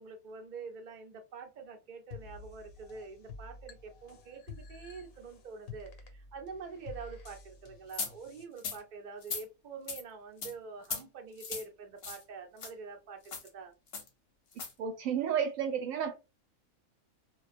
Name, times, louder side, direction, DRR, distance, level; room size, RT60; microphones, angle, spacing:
voice 1, 0.0-13.7, right 5 dB, 55° right, 0.5 m, -46 dB
sound 1, 2.1-8.5, left 4 dB, 85° left, 1.0 m, -50 dB
sound 2, 7.9-8.1 8.6-8.8 9.2-9.4 9.9-10.0 10.4-10.5 10.8-11.0 11.4-11.6 12.0-12.2 12.6-12.7 13.2-13.5 13.9-14.1 14.5-14.7, left 5 dB, 55° left, 0.8 m, -37 dB
voice 2, 14.8-16.1, right 8 dB, 75° right, 1.0 m, -31 dB
2.2 x 2.2 x 2.4 m
omnidirectional pair, 1.5 m